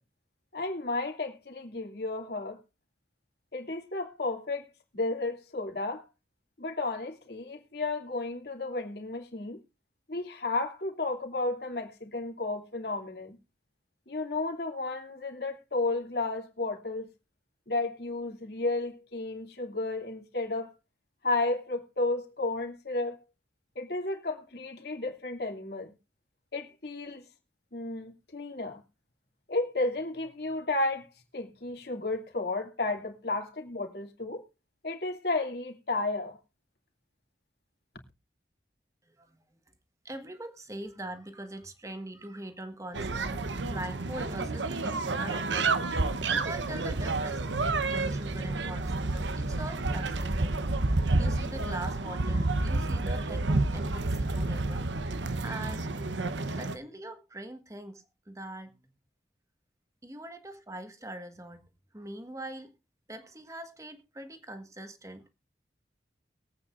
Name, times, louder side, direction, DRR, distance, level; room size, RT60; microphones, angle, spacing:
voice 1, 0.5-2.6 3.5-4.7 4.9-6.1 6.6-9.6 10.1-13.4 14.1-17.1 17.7-20.7 21.2-23.2 23.7-25.9 26.5-27.3 27.7-28.8 29.5-31.1 31.3-34.4 34.8-36.4, left 2 dB, 60° left, 2.7 m, -33 dB
voice 2, 39.1-39.4 40.0-45.7 46.3-50.5 51.2-54.9 55.4-55.9 56.5-58.7 60.0-61.7 61.9-62.7 63.1-65.3, right 1 dB, 15° right, 1.5 m, -42 dB
sound 1, 42.9-56.8, right 2 dB, 80° right, 1.0 m, -30 dB
22.5 x 8.7 x 2.5 m
head